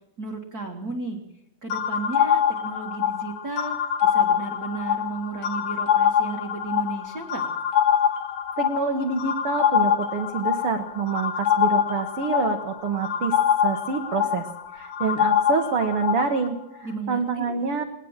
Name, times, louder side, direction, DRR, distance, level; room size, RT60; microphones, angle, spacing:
voice 1, 0.2-1.2 1.6-7.5 16.8-17.6, right 3 dB, 45° right, 1 dB, 1.2 m, -34 dB
sound 1, 1.7-16.5, left 9 dB, 65° left, 1.7 m, -24 dB
voice 2, 8.6-13.4 13.6-14.5 14.7-17.8, right 5 dB, 70° right, 6 dB, 1.3 m, -27 dB
19.5 x 19.5 x 7.3 m, 0.84 s
omnidirectional pair, 4.2 m